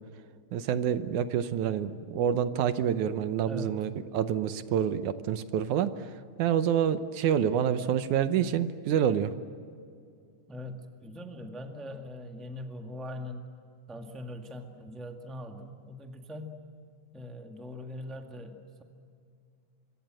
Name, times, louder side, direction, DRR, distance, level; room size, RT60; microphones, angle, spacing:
voice 1, 0.5-5.9 6.4-9.3, right 9 dB, 75° right, 11 dB, 2.3 m, -27 dB
voice 2, 3.5-3.8 10.5-13.5 13.9-16.6 17.1-18.8, left 1 dB, ahead, 3 dB, 1.1 m, -41 dB
26.0 x 23.5 x 7.7 m, 2.3 s
omnidirectional pair, 3.6 m